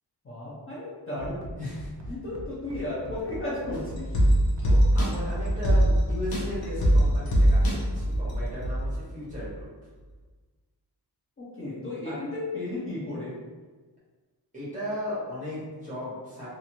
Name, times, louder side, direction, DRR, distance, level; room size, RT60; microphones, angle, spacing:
voice 1, 0.2-1.4 2.1-4.1 11.6-13.4, left 2 dB, 35° left, -9 dB, 0.7 m, -34 dB
Bass drum, 1.2-8.6, right 1 dB, 45° right, 0.6 m, -39 dB
voice 2, 1.6-2.1 4.7-9.7 12.0-12.2 14.5-16.5, left 1 dB, 20° right, -9 dB, 1.1 m, -36 dB
sound 1, 3.7-8.9 9.3-9.4, equal, 60° left, 0.8 m, -23 dB
2.6 x 2.5 x 2.9 m, 1.4 s
wide cardioid pair, 175°, 40 cm